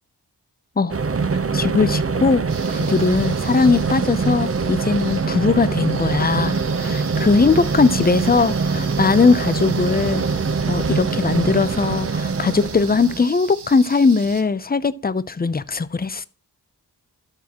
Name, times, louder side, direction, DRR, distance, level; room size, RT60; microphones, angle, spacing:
sound 1, 0.9-13.2, right 4 dB, 35° right, 0.8 m, -23 dB
voice 1, 1.5-2.4 2.7-10.3 10.7-16.3, left 4 dB, 25° left, 0.6 m, -19 dB
sound 2, 2.5-14.4, right 7 dB, 85° right, 1.1 m, -39 dB
11.5 x 6.5 x 3.0 m
cardioid pair, 50°, 40 cm